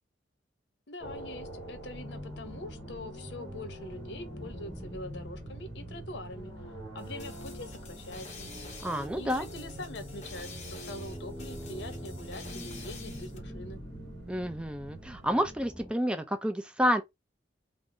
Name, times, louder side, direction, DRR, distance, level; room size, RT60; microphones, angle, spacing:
voice 1, 0.9-6.5 6.9-8.5 9.1-13.8, left 2 dB, 70° left, 0.7 m, -43 dB
sound 1, 1.0-15.9, equal, 20° left, 1.1 m, -44 dB
sound 2, 1.0-15.5, right 3 dB, 70° right, 0.8 m, -49 dB
sound 3, 7.0-13.4, left 5 dB, 40° left, 0.8 m, -49 dB
voice 2, 8.8-9.5 14.3-17.0, equal, 5° right, 0.5 m, -29 dB
3.4 x 2.0 x 3.8 m
head